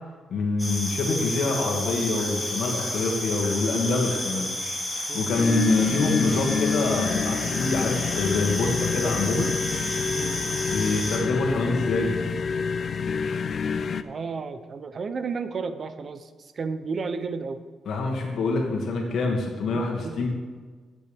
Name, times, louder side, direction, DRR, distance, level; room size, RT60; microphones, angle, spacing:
voice 1, 0.3-4.5 4.9-9.5 10.7-12.2 17.9-20.3, left 3 dB, 65° left, 0 dB, 2.2 m, -26 dB
sound 1, 0.6-11.2, left 1 dB, 5° left, 2.0 m, -31 dB
sound 2, 5.3-14.0, left 5 dB, 40° left, 0.4 m, -28 dB
voice 2, 14.0-17.6 19.3-19.4 19.7-20.3, right 4 dB, 35° right, 11 dB, 0.6 m, -33 dB
15.0 x 8.4 x 3.5 m, 1.4 s
wide cardioid pair, 175°, 0 cm